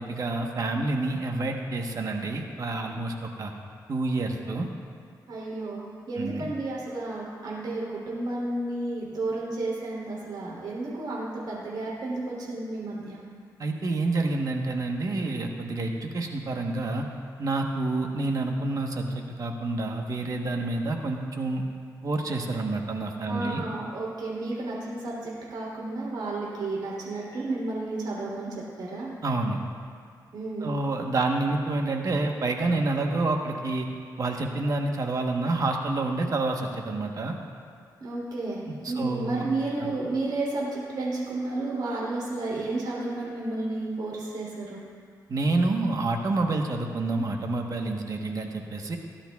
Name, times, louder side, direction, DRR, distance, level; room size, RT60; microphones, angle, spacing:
voice 1, 0.0-3.5 3.9-4.7 6.2-6.5 13.6-17.1 17.4-21.6 22.0-23.6 29.2-29.6 30.6-33.9 34.2-37.4 38.7-39.5 39.8-39.9 45.3-49.0, right 2 dB, 50° right, 2 dB, 1.1 m, -28 dB
voice 2, 5.3-13.2 23.3-29.1 30.3-30.7 38.0-44.8, right 2 dB, 75° right, -5 dB, 3.2 m, -32 dB
18.5 x 11.5 x 2.4 m, 2.1 s
cardioid pair, 100°, 7 cm